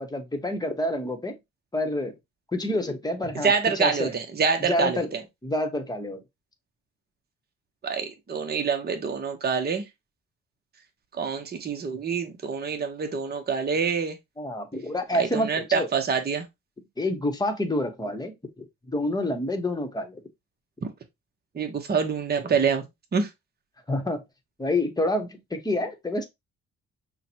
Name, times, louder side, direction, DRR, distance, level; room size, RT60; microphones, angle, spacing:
voice 1, 0.0-1.3 1.7-2.1 2.5-4.2 4.6-5.1 5.4-6.2 14.4-15.9 17.0-20.2 23.9-24.2 24.6-26.2, left 1 dB, 15° left, 1.0 m, -28 dB
voice 2, 3.4-5.0 7.8-9.8 11.2-14.2 15.1-16.4 20.8-20.9 21.5-22.8 23.1-23.3, right 5 dB, 30° right, 0.9 m, -26 dB
5.7 x 2.2 x 2.8 m
cardioid pair, 90°, 30 cm